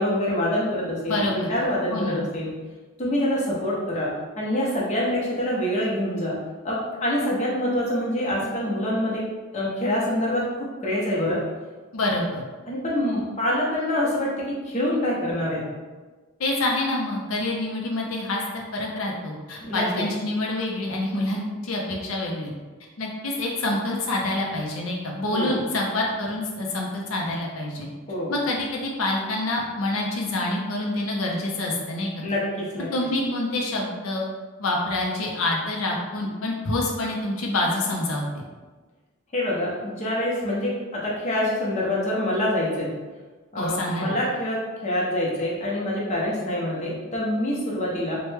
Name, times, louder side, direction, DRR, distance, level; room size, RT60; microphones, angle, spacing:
voice 1, 0.0-2.5 3.0-6.4 6.6-9.2 9.5-11.4 12.7-15.6 19.6-20.0 25.3-25.5 28.1-28.3 32.2-32.9 39.3-42.9 43.5-48.2, left 1 dB, 35° left, -5 dB, 0.7 m, -26 dB
voice 2, 1.1-1.5 1.9-2.2 11.9-12.4 16.4-22.5 23.0-27.9 28.3-32.1 32.9-34.2 34.6-38.4 43.6-44.1, left 2 dB, 90° left, -1 dB, 0.5 m, -27 dB
3.1 x 2.1 x 3.2 m, 1.3 s
head